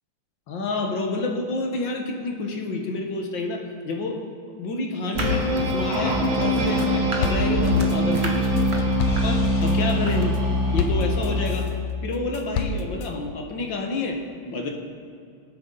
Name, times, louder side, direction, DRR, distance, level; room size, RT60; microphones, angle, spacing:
voice 1, 0.5-4.2 4.5-8.5 9.1-10.3 10.7-11.7 12.0-14.7, left 3 dB, 55° left, 2 dB, 1.5 m, -29 dB
sound 1, 5.1-11.7, equal, 55° right, 4.6 m, -23 dB
sound 2, 5.1-10.3, right 3 dB, 75° right, 0.5 m, -35 dB
sound 3, 6.4-6.9 7.2-11.7 12.1-13.1, left 4 dB, 75° left, 1.8 m, -31 dB
19.0 x 9.4 x 3.9 m, 2.4 s
omnidirectional pair, 3.3 m